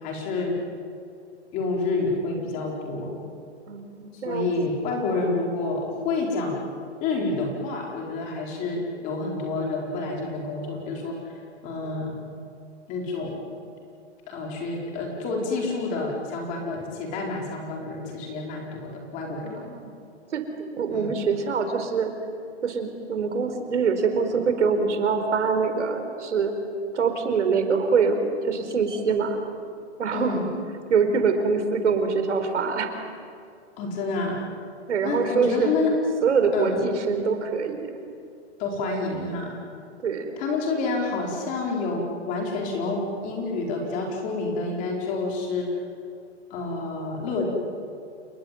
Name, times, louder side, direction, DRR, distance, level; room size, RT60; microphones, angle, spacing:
voice 1, 0.0-0.6 1.5-3.1 4.2-6.6 7.0-11.2 11.6-12.2 12.9-13.4 14.3-19.7 20.9-21.1 30.1-30.5 33.8-34.4 35.0-35.9 36.5-36.8 38.6-39.6 40.4-45.7 46.5-47.5, left 3 dB, 20° left, 0 dB, 4.6 m, -28 dB
voice 2, 3.7-4.5 19.4-19.9 20.3-22.1 22.6-26.5 26.9-29.4 30.0-30.4 30.9-32.9 34.9-35.7 36.2-38.0 40.0-40.4, right 5 dB, 80° right, 6 dB, 4.6 m, -24 dB
29.0 x 21.0 x 9.2 m, 2.5 s
hypercardioid pair, 165°, 35 cm